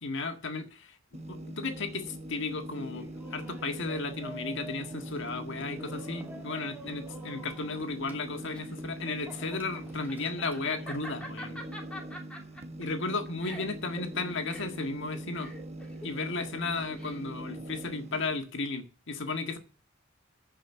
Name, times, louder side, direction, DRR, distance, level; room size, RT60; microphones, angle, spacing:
voice 1, 0.0-11.6 12.8-15.5 16.0-19.6, left 3 dB, 65° left, 1.7 m, -34 dB
sound 1, 1.1-18.4, right 1 dB, 30° right, 1.0 m, -42 dB
Laughter, 2.7-10.8, right 1 dB, 10° right, 2.5 m, -48 dB
Laughter 2, 8.5-17.5, equal, 5° left, 2.7 m, -46 dB
14.5 x 5.5 x 7.1 m
head